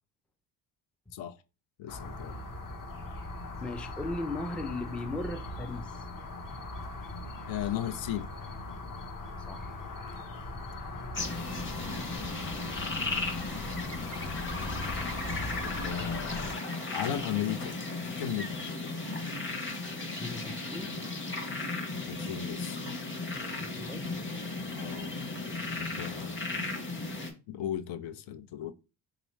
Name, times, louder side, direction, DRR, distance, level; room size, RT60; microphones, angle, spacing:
voice 1, 1.8-2.4 7.5-8.3 15.6-16.6 16.9-17.8 18.1-18.6 22.1-22.8 24.7-25.1 25.8-26.4 27.5-28.7, left 11 dB, 65° left, 0.7 m, -36 dB
sound 1, 1.9-16.5, left 2 dB, 40° left, 1.1 m, -40 dB
voice 2, 3.6-6.1 9.5-9.8 12.2-12.3 15.9-16.3 20.2-21.0 23.6-24.1 26.5-26.7, left 2 dB, 5° left, 0.4 m, -38 dB
sound 2, 11.1-27.3, left 3 dB, 25° left, 1.2 m, -35 dB
sound 3, 14.3-19.8, left 4 dB, 90° left, 1.5 m, -58 dB
3.6 x 3.0 x 3.1 m
supercardioid pair, 70°, 49 cm